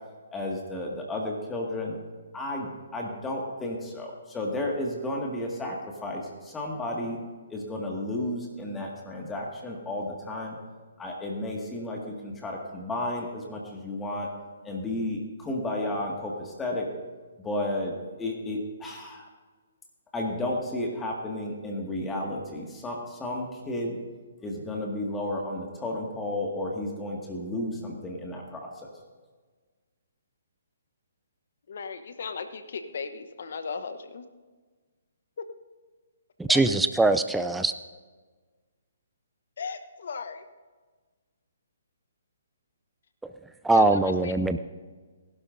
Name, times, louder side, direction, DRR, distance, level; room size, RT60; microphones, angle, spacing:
voice 1, 0.3-2.0 2.3-7.2 7.5-10.6 11.0-14.3 14.6-16.9 17.4-19.3 20.1-24.0 24.4-28.9, left 1 dB, 10° left, -1 dB, 2.0 m, -32 dB
voice 2, 31.7-34.3 35.4-35.5 36.5-36.6 39.6-40.4 43.7-44.3, left 5 dB, 60° left, 9 dB, 1.0 m, -36 dB
voice 3, 36.4-37.7 43.6-44.6, right 2 dB, 5° right, 8 dB, 0.4 m, -22 dB
20.0 x 12.0 x 2.7 m, 1.4 s
figure-of-eight pair, 135°, 0 cm